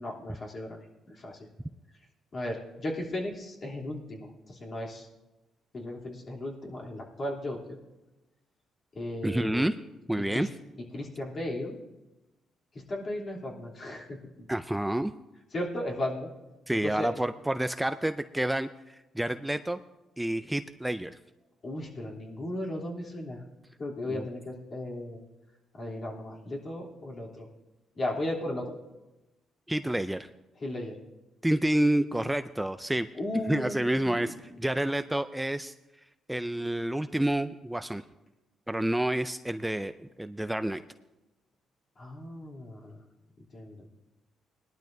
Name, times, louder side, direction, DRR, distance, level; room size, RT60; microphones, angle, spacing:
voice 1, 0.0-1.5 2.3-5.1 5.7-7.6 8.9-9.7 10.2-10.5 10.9-11.8 12.7-14.5 15.5-16.3 16.8-17.1 21.6-23.4 23.8-25.2 25.7-27.5 28.0-28.7 30.6-31.0 33.2-34.4 42.0-43.1 43.5-43.9, left 1 dB, 45° left, -2 dB, 3.1 m, -36 dB
voice 2, 9.2-9.7 10.1-10.5 14.5-15.1 16.7-19.8 20.2-21.2 24.1-24.3 29.7-30.3 31.4-33.1 33.5-35.7 36.3-38.0 38.7-40.8, right 1 dB, 5° right, 10 dB, 0.4 m, -29 dB
20.0 x 12.0 x 2.7 m, 1.0 s
cardioid pair, 90°, 0 cm